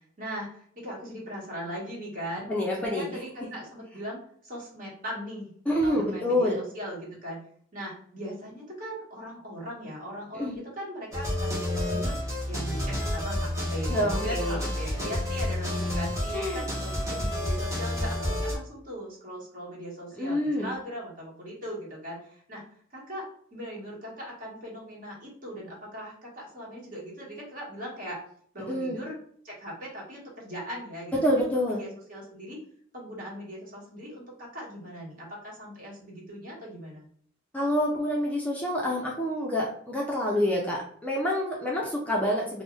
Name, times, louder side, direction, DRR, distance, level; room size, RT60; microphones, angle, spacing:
voice 1, 0.2-2.5 2.7-7.4 7.7-22.6 22.9-28.2 28.5-29.2 29.4-32.6 32.9-37.1, equal, 45° right, -5 dB, 1.2 m, -39 dB
voice 2, 2.5-3.1 5.7-6.6 10.3-10.6 13.9-14.6 16.3-16.7 20.2-20.7 28.7-29.0 31.2-31.8 37.5-42.6, left 1 dB, 5° left, -3 dB, 0.4 m, -27 dB
sound 1, 11.1-18.5, left 1 dB, 15° right, 0.9 m, -30 dB
2.5 x 2.0 x 3.7 m, 0.62 s
head